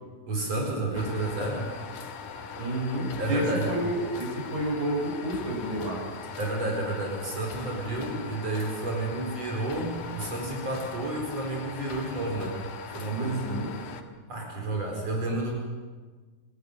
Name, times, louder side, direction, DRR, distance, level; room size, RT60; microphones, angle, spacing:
voice 1, 0.3-1.7 3.2-3.7 6.4-12.6 12.9-13.6 14.3-15.5, right 2 dB, 55° right, 0 dB, 5.7 m, -31 dB
sound 1, 0.9-14.0, left 5 dB, 85° left, 3.1 m, -40 dB
voice 2, 2.6-6.0 13.0-13.7, right 1 dB, 85° right, -1 dB, 8.5 m, -30 dB
27.5 x 14.5 x 9.2 m, 1.4 s
omnidirectional pair, 3.4 m